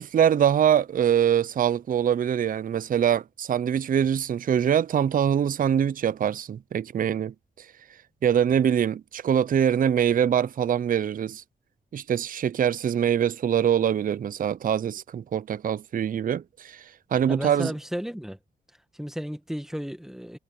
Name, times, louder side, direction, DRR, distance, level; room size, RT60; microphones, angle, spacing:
voice 1, 0.0-7.7 8.2-11.4 11.9-16.8 17.1-17.7, right 9 dB, 50° right, 0.4 m, -24 dB
voice 2, 17.3-18.4 19.0-20.4, equal, ahead, 1.6 m, -33 dB
cardioid pair, 80°, 18 cm